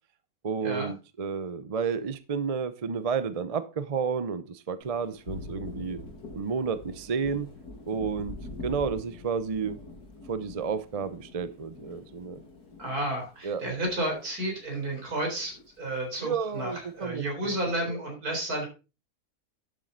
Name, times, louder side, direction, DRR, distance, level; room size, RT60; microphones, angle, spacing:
voice 1, 0.4-6.0 6.3-7.5 7.9-8.4 8.6-9.8 10.3-12.4 13.4-13.6 16.2-17.6 17.8-18.0, right 6 dB, 40° right, 13 dB, 0.5 m, -31 dB
Thunder, 4.8-14.6 14.9-16.0, left 2 dB, 75° left, 3.0 m, -44 dB
voice 2, 12.8-18.7, right 1 dB, 70° right, 2 dB, 4.6 m, -32 dB
12.0 x 7.6 x 3.9 m, 0.30 s
omnidirectional pair, 1.7 m